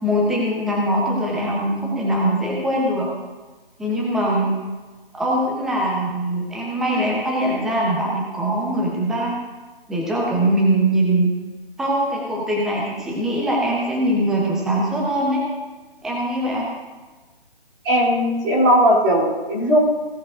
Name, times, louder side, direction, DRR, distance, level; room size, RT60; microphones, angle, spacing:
voice 1, 0.0-3.1 3.8-4.6 5.1-9.4 9.9-11.3 11.8-15.4 16.0-16.7, right 1 dB, ahead, -3 dB, 0.7 m, -22 dB
voice 2, 17.8-19.8, equal, 25° right, -7 dB, 3.2 m, -17 dB
16.5 x 10.5 x 2.5 m, 1.2 s
figure-of-eight pair, 145°, 29 cm